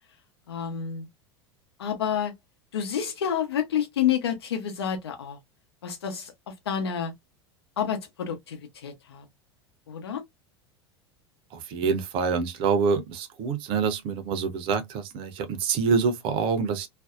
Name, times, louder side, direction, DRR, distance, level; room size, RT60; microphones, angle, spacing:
voice 1, 0.5-1.1 1.8-2.3 2.7-5.4 5.8-6.3 6.7-7.1 7.8-9.3 9.9-10.2, left 8 dB, 65° left, 0.9 m, -29 dB
voice 2, 11.5-16.9, right 5 dB, 40° right, 0.6 m, -26 dB
2.5 x 2.1 x 2.3 m
figure-of-eight pair, 80°, 14 cm